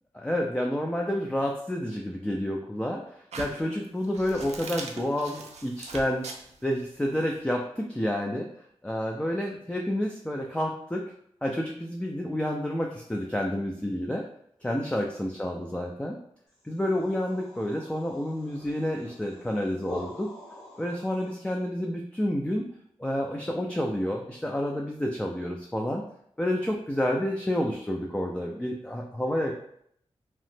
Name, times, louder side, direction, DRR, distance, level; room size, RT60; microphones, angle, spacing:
voice 1, 0.2-6.3 6.6-8.5 8.8-11.0 11.4-14.2 14.6-16.2 16.6-20.3 20.8-22.6 23.0-26.0 26.4-29.6, left 1 dB, 10° left, 0 dB, 0.4 m, -29 dB
sound 1, 3.3-7.4, right 3 dB, 85° right, 0.4 m, -41 dB
sound 2, 16.5-21.5, equal, 75° left, 1.4 m, -46 dB
2.9 x 2.0 x 3.2 m, 0.68 s
cardioid pair, 55°, 11 cm